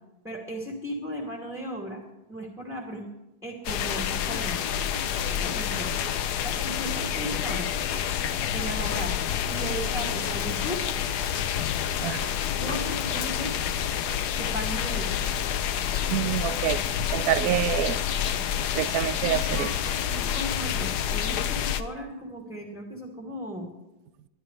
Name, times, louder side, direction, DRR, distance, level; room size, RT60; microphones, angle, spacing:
voice 1, 0.2-2.0 2.3-3.1 3.4-4.7 5.4-5.9 6.4-7.7 8.5-9.1 9.5-10.8 12.5-13.6 14.4-15.2 18.3-18.4 19.1-19.7 20.1-23.7, equal, ahead, -1 dB, 2.5 m, -36 dB
sound 1, 3.6-21.8, left 9 dB, 65° left, 1.2 m, -28 dB
voice 2, 16.1-16.8 17.1-18.0 18.7-19.7, right 13 dB, 65° right, 15 dB, 0.9 m, -26 dB
22.5 x 12.5 x 3.3 m, 0.97 s
omnidirectional pair, 2.1 m